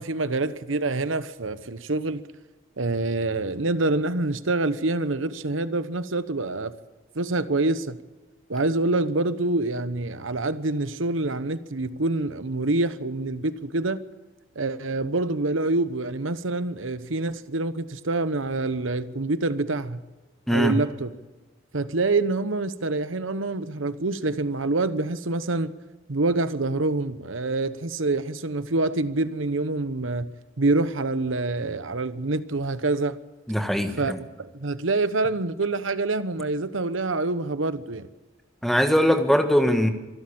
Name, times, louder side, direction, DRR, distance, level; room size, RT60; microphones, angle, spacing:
voice 1, 0.0-2.2 2.8-6.7 7.1-8.0 8.5-14.0 14.5-20.0 20.5-21.1 21.7-25.7 26.1-30.3 30.6-33.2 34.0-38.1, right 2 dB, 85° right, 1.0 m, -26 dB
voice 2, 33.5-34.2 38.6-39.9, equal, ahead, 1.6 m, -21 dB
25.5 x 12.0 x 8.8 m
head